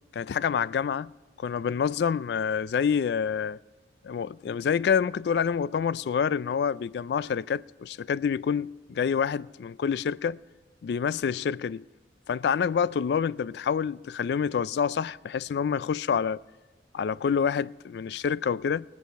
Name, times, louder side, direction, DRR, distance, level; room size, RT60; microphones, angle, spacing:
voice 1, 0.1-1.1 1.4-3.6 4.0-10.4 10.8-11.8 12.3-16.4 16.9-18.8, left 7 dB, 65° left, 0.3 m, -27 dB
20.5 x 8.5 x 4.6 m
head